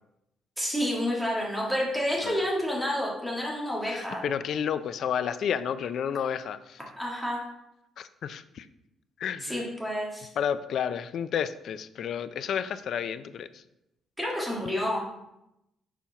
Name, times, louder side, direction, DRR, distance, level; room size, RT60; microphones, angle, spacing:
voice 1, 0.6-4.2 7.0-7.4 9.4-10.3 14.2-15.0, equal, ahead, -3 dB, 1.8 m, -29 dB
voice 2, 3.8-6.8 8.0-8.7 9.2-9.6 10.4-13.6, left 8 dB, 55° left, 13 dB, 0.4 m, -31 dB
7.0 x 4.4 x 5.7 m, 0.87 s
cardioid pair, 170°, 0 cm